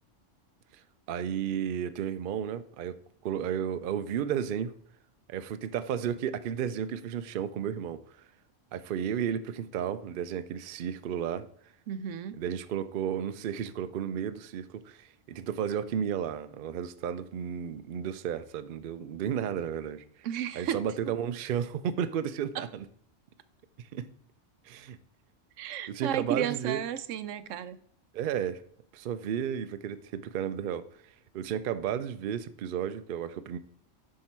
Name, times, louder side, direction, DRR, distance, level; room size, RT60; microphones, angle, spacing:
voice 1, 1.1-4.7 5.3-8.2 8.7-11.5 12.4-20.0 20.5-22.8 23.8-24.1 24.6-25.0 25.9-26.8 28.1-28.6 28.9-30.9 31.3-33.6, right 9 dB, 60° right, 12 dB, 0.6 m, -33 dB
voice 2, 11.9-12.4 20.2-20.8 22.5-22.7 25.6-27.8, right 9 dB, 80° right, 13 dB, 0.9 m, -33 dB
10.0 x 3.8 x 4.3 m, 0.63 s
omnidirectional pair, 1.3 m